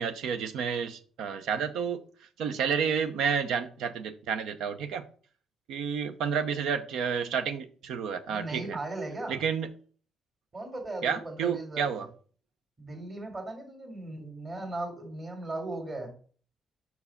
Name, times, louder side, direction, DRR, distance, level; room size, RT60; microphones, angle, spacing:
voice 1, 0.0-2.0 2.4-5.1 5.7-8.8 9.3-9.7 11.0-12.1, right 6 dB, 85° right, 0.7 m, -30 dB
voice 2, 8.3-9.4 10.5-12.1 12.8-16.2, right 2 dB, 35° right, 2.2 m, -37 dB
5.4 x 4.7 x 5.6 m
cardioid pair, 90°, 0 cm